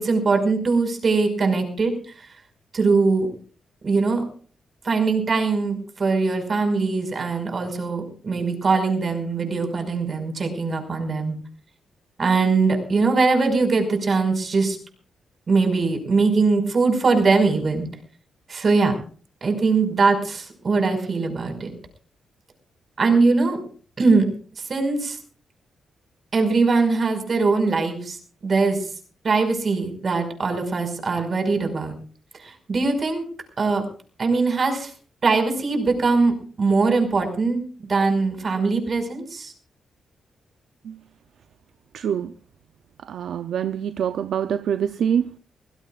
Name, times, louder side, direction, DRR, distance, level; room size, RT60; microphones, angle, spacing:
voice 1, 0.0-2.3 2.7-3.3 3.8-4.2 4.8-11.3 12.2-14.8 15.5-17.8 18.5-19.0 19.4-21.7 23.0-23.6 24.0-24.3 24.6-25.2 26.3-28.2 28.4-28.9 29.2-32.0 32.4-33.2 33.6-33.8 34.2-34.9 35.2-37.6 37.9-39.5, right 4 dB, 50° right, 5.5 m, -21 dB
voice 2, 41.9-42.3 43.1-45.3, right 8 dB, 75° right, 0.6 m, -25 dB
25.0 x 16.5 x 2.5 m
cardioid pair, 75°, 0 cm